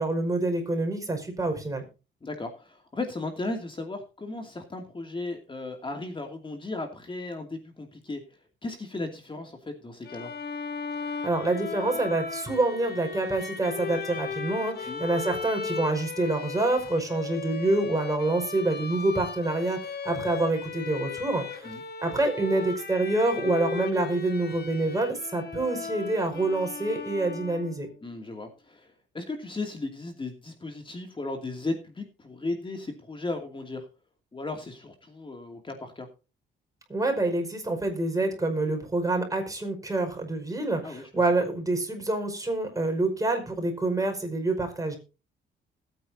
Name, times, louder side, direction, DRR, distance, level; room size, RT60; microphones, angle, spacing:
voice 1, 0.0-1.8 11.2-21.7 22.0-27.9 36.9-45.0, right 2 dB, 15° right, 4 dB, 5.2 m, -27 dB
voice 2, 2.2-8.2 8.6-10.3 14.9-15.0 21.6-21.8 28.0-33.8 34.3-36.1 40.8-41.1 41.4-41.5, left 2 dB, 25° left, 4 dB, 2.6 m, -36 dB
Bowed string instrument, 10.0-27.9, left 5 dB, 55° left, 2.2 m, -36 dB
20.5 x 9.3 x 2.8 m, 0.31 s
cardioid pair, 90°, 20 cm